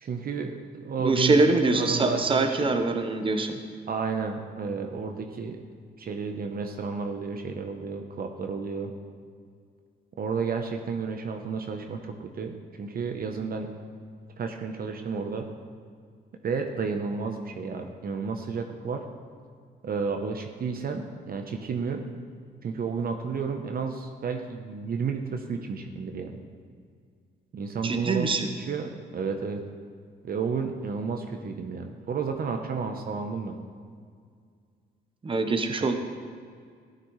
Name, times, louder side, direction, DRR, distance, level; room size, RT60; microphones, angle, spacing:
voice 1, 0.0-2.7 3.9-5.6 6.0-8.9 10.2-13.7 14.4-15.5 16.4-19.0 19.8-22.1 22.6-26.4 27.5-29.6 30.2-33.6, right 5 dB, 50° right, 4 dB, 0.8 m, -32 dB
voice 2, 1.0-3.5 27.8-28.5 35.2-35.9, right 3 dB, 25° right, 5 dB, 0.9 m, -24 dB
13.5 x 9.2 x 3.2 m, 2.1 s
cardioid pair, 90°, 20 cm